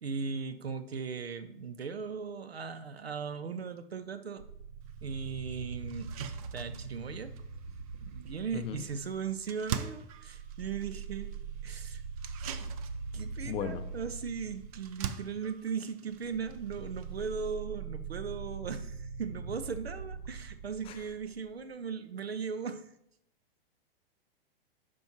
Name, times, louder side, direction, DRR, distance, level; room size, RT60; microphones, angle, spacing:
voice 1, 0.0-4.4 5.0-7.3 8.0-11.4 11.6-12.0 12.6-12.7 13.1-22.9, right 6 dB, 85° right, 12 dB, 0.5 m, -38 dB
sound 1, 4.4-9.6 10.0-21.6, right 5 dB, 65° right, 0.9 m, -42 dB
sound 2, 4.9-5.0 5.4-5.5 5.9-17.5, right 8 dB, 40° right, 0.5 m, -45 dB
voice 2, 13.4-13.8 20.9-21.0, left 8 dB, 20° left, 9 dB, 0.5 m, -36 dB
11.5 x 4.6 x 3.0 m, 0.79 s
figure-of-eight pair, 105°, 30 cm